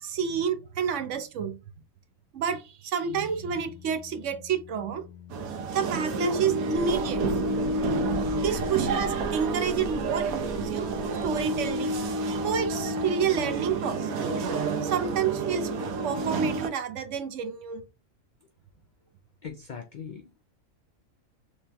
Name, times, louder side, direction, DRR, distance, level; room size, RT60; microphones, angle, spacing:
voice 1, 0.0-1.6 2.3-5.1 5.7-7.3 8.4-10.9 11.2-12.0 12.4-14.3 14.8-15.7 16.0-17.9, right 7 dB, 70° right, 0.9 m, -29 dB
sound 1, 3.1-13.7, left 8 dB, 40° left, 0.9 m, -49 dB
sound 2, 5.3-16.7, right 3 dB, 85° right, 1.2 m, -29 dB
sound 3, 6.7-13.4, left 1 dB, 30° right, 0.4 m, -42 dB
voice 2, 19.4-20.4, left 6 dB, 80° left, 0.4 m, -40 dB
3.3 x 3.0 x 3.3 m
omnidirectional pair, 1.4 m